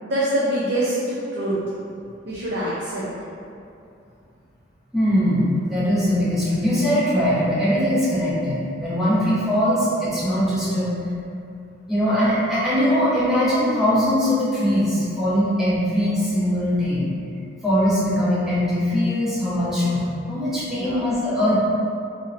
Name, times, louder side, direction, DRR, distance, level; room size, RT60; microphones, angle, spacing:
voice 1, 0.0-1.5 2.3-3.0 20.7-21.0, right 1 dB, 60° right, -9 dB, 0.4 m, -25 dB
voice 2, 4.9-10.9 11.9-17.1 17.6-21.6, equal, ahead, -12 dB, 0.6 m, -21 dB
2.6 x 2.0 x 2.4 m, 2.5 s
head